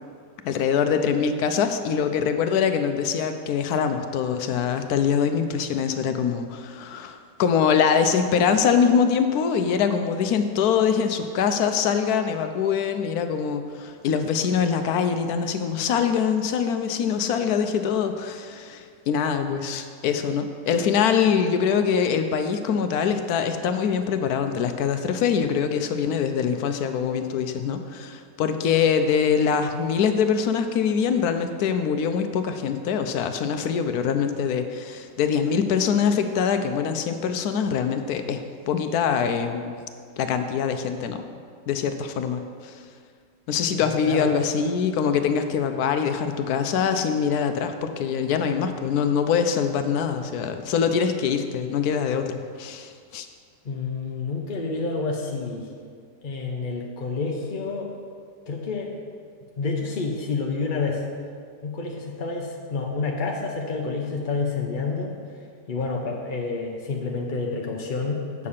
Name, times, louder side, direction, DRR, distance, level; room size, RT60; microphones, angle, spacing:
voice 1, 0.4-39.8 40.2-41.2 41.7-42.8 43.5-53.3, left 7 dB, 70° left, 8 dB, 1.0 m, -24 dB
voice 2, 43.8-44.3 53.6-55.7 56.2-57.9 58.5-58.9 59.6-61.1 61.6-65.2 65.7-68.5, left 4 dB, 55° left, 0 dB, 0.5 m, -29 dB
8.4 x 6.6 x 5.5 m, 2.1 s
omnidirectional pair, 2.0 m